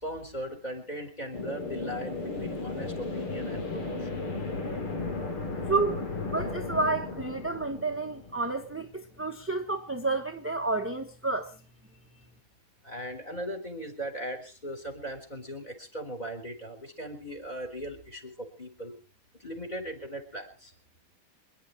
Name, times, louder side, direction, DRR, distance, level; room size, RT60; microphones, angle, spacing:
voice 1, 0.0-4.1 12.8-18.9 19.4-20.7, equal, 20° left, 4.2 m, -38 dB
sound 1, 1.3-8.9, left 3 dB, 80° left, 4.3 m, -35 dB
voice 2, 5.7-11.5 12.2-12.3, right 3 dB, 10° right, 0.9 m, -30 dB
26.5 x 11.0 x 4.5 m
omnidirectional pair, 2.3 m